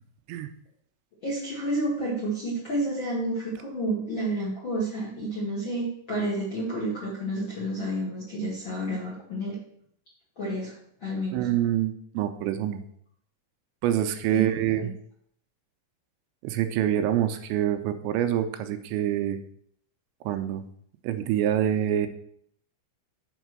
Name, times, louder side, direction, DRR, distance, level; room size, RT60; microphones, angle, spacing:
voice 1, 1.2-9.6 10.4-10.7 11.0-11.4 14.3-14.5 14.8-14.9, right 1 dB, 40° left, -5 dB, 1.8 m, -30 dB
voice 2, 11.3-12.9 13.8-14.9 16.4-19.4 20.2-20.6 21.0-22.1, right 11 dB, 85° right, 8 dB, 2.9 m, -26 dB
8.1 x 4.4 x 6.1 m, 0.65 s
omnidirectional pair, 5.2 m